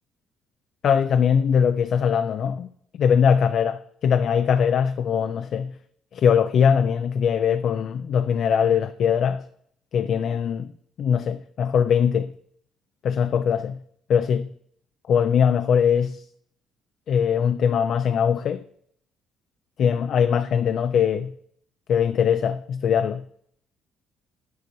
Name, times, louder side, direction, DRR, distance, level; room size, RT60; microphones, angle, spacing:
voice 1, 0.8-2.7 3.0-5.8 6.1-9.4 9.9-10.7 11.0-12.3 13.0-13.8 14.1-14.5 15.1-16.2 17.1-18.6 19.8-21.3 21.9-23.2, left 7 dB, 45° left, 0.4 m, -21 dB
9.5 x 5.6 x 4.5 m
cardioid pair, 150°, 0 cm